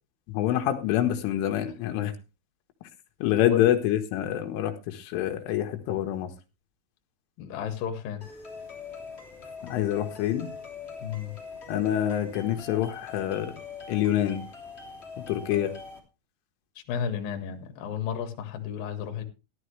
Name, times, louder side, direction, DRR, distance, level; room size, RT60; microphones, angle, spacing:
voice 1, 0.3-2.1 3.2-6.3 9.6-10.5 11.7-13.6 13.9-14.4 15.2-15.7, left 12 dB, 85° left, 6 dB, 3.8 m, -26 dB
voice 2, 7.4-8.2 11.0-11.3 16.9-19.2, left 8 dB, 55° left, 5 dB, 3.0 m, -32 dB
sound 1, 8.2-16.0, left 4 dB, 15° left, 2.4 m, -43 dB
14.0 x 12.5 x 3.3 m, 0.28 s
omnidirectional pair, 5.5 m